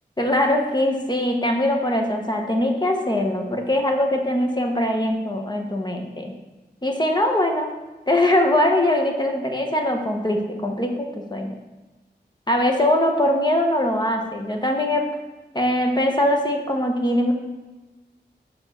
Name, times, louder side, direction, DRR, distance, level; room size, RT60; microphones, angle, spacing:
voice 1, 0.2-6.3 6.8-7.7 8.1-11.5 12.5-15.0 15.5-17.3, left 1 dB, 25° left, 2 dB, 1.0 m, -22 dB
5.2 x 4.4 x 5.9 m, 1.2 s
wide cardioid pair, 65°, 18 cm